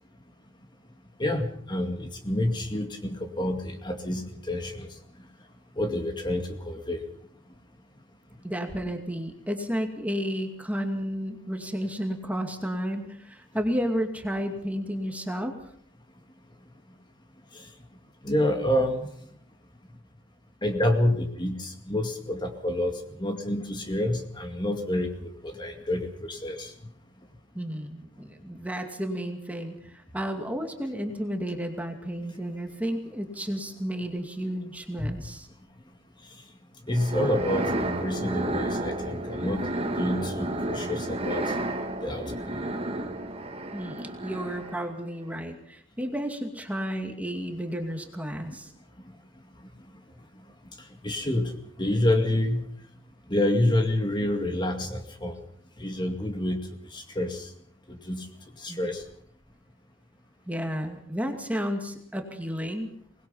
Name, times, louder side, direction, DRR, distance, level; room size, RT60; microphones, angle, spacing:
voice 1, 1.2-4.9 5.8-7.0 17.5-17.7 18.2-19.1 20.6-26.7 35.0-35.1 36.9-39.6 40.0-41.6 42.0-42.6 51.0-51.5 51.8-52.7 53.3-55.4 55.8-56.6 56.9-57.5 57.9-58.3 58.6-59.0, left 1 dB, 25° left, 4 dB, 2.1 m, -28 dB
voice 2, 8.4-15.5 27.5-35.5 43.7-48.7 58.7-58.9 60.5-62.9, equal, 5° right, 4 dB, 2.4 m, -32 dB
sound 1, 36.9-44.9, right 1 dB, 30° right, 1.8 m, -31 dB
23.5 x 20.5 x 5.7 m, 0.63 s
head